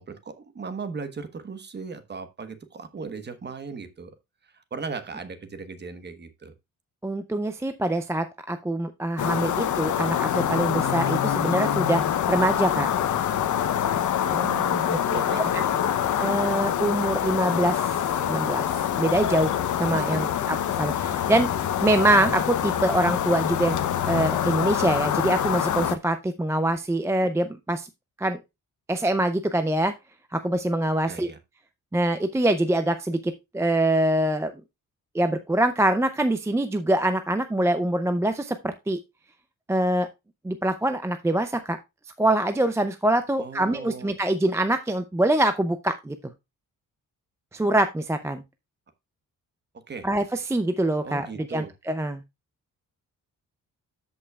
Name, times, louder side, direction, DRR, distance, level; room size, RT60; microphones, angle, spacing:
voice 1, 0.0-4.1 4.4-6.5 14.2-16.2 19.9-20.5 31.1-31.4 43.4-44.2 49.9-50.1 51.0-51.7, right 4 dB, 30° right, 1.2 m, -37 dB
voice 2, 7.0-12.9 16.2-17.9 18.2-23.8 24.0-27.9 28.2-28.4 28.9-29.9 30.3-31.3 31.9-34.5 35.1-39.0 39.7-40.1 40.4-41.8 42.2-46.2 47.5-48.4 50.0-52.2, right 1 dB, 10° right, 0.4 m, -24 dB
sound 1, 9.2-26.0, left 9 dB, 65° left, 0.7 m, -25 dB
13.5 x 5.4 x 2.3 m
wide cardioid pair, 160°, 33 cm